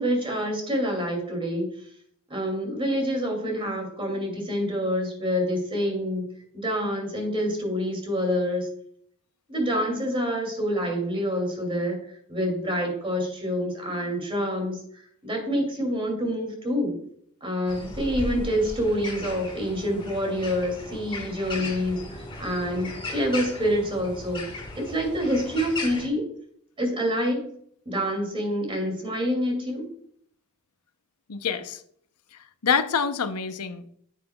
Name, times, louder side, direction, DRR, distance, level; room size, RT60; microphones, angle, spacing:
voice 1, 0.0-1.7 2.3-6.2 6.5-8.7 9.5-12.0 12.3-17.0 17.4-24.4 24.8-26.2 26.8-27.5 27.9-29.9, equal, 25° right, 1 dB, 2.4 m, -27 dB
sound 1, 17.7-26.1, left 2 dB, 20° left, 1.5 m, -37 dB
voice 2, 31.3-31.8 32.3-33.9, left 6 dB, 85° left, 11 dB, 0.7 m, -27 dB
9.2 x 7.4 x 2.3 m, 0.65 s
head